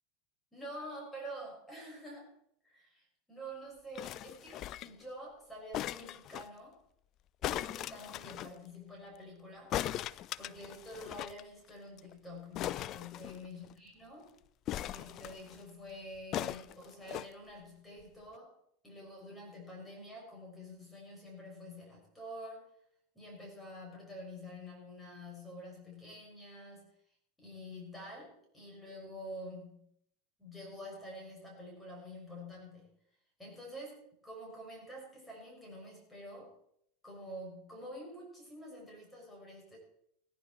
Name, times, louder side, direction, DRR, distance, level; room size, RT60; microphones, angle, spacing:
voice 1, 0.5-2.3 2.6-6.8 7.4-9.7 10.4-14.3 14.9-18.5 18.8-22.6 23.1-26.9 27.4-29.9 30.4-32.9 33.4-36.5 37.0-39.8, equal, 10° left, -2 dB, 6.7 m, -47 dB
sound 1, 4.0-5.0 5.7-6.5 7.4-8.5 9.7-11.4 11.7-11.8 12.0-12.1 12.6-13.7 14.7-15.6 16.3-17.3 18.0-18.1, left 13 dB, 45° left, 0.4 m, -39 dB
18.0 x 10.5 x 4.6 m, 0.71 s
hypercardioid pair, 90°, 0 cm